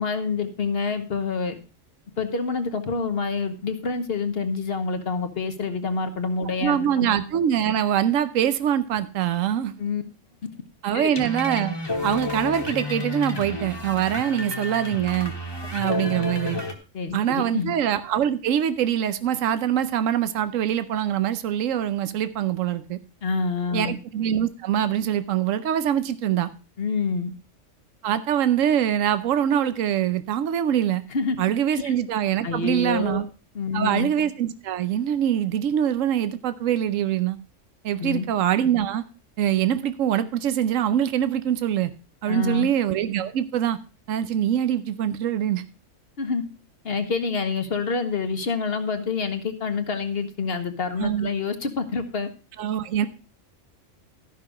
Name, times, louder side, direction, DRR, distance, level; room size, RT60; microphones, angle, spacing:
voice 1, 0.0-1.6 2.2-7.1 9.8-10.0 10.9-11.2 15.8-16.1 16.9-17.7 23.2-23.9 26.8-27.3 31.1-31.4 31.7-31.9 32.4-33.2 33.5-34.1 38.0-38.2 42.3-42.7 46.2-46.4 46.8-52.3, left 4 dB, 50° left, 1.2 m, -27 dB
voice 2, 6.6-9.7 10.8-11.8 12.0-15.3 15.7-16.6 17.1-23.0 23.7-26.5 28.0-31.0 31.4-33.3 33.7-37.4 37.8-39.0 39.4-41.9 42.2-43.8 44.1-45.6 51.0-51.3 52.6-53.1, right 10 dB, 85° right, 1.1 m, -24 dB
sound 1, 11.1-16.7, left 2 dB, 20° left, 1.3 m, -31 dB
13.0 x 5.7 x 4.9 m
omnidirectional pair, 1.3 m